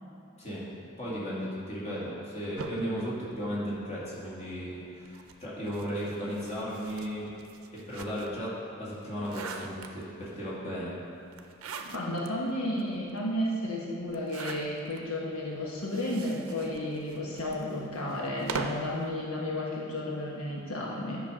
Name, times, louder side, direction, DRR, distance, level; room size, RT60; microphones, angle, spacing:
voice 1, 1.0-7.3 7.7-11.0, equal, 30° left, -7 dB, 2.1 m, -35 dB
unzip leather boots take off and drop on wood floor, 2.6-4.2 5.0-8.5 8.9-10.3 11.3-12.3 12.8-12.9 13.1-13.2 14.1-15.0 15.8-19.0, right 4 dB, 85° right, 0.6 m, -41 dB
voice 2, 11.9-21.2, left 1 dB, 90° left, -3 dB, 1.3 m, -32 dB
10.0 x 6.1 x 4.9 m, 2.7 s
head